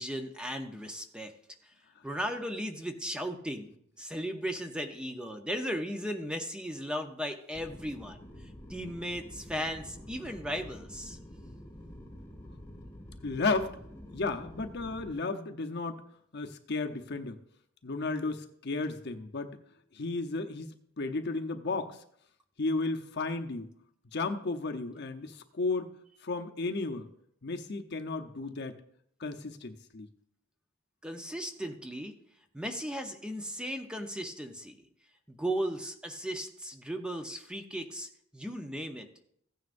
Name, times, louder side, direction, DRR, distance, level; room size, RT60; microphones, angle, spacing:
voice 1, 0.0-1.3 1.6-1.7 2.0-8.2 8.7-11.2 31.0-32.1 32.5-34.8 35.3-39.1, equal, 5° right, 5 dB, 0.7 m, -36 dB
sound 1, 7.5-15.1, left 1 dB, 15° left, 1.3 m, -48 dB
voice 2, 13.2-13.8 14.1-16.0 16.3-17.4 17.8-19.5 19.9-22.0 22.6-23.7 24.1-25.9 26.2-27.1 27.4-28.8 29.2-30.1, left 3 dB, 55° left, 6 dB, 0.8 m, -33 dB
15.5 x 9.5 x 2.6 m, 0.69 s
head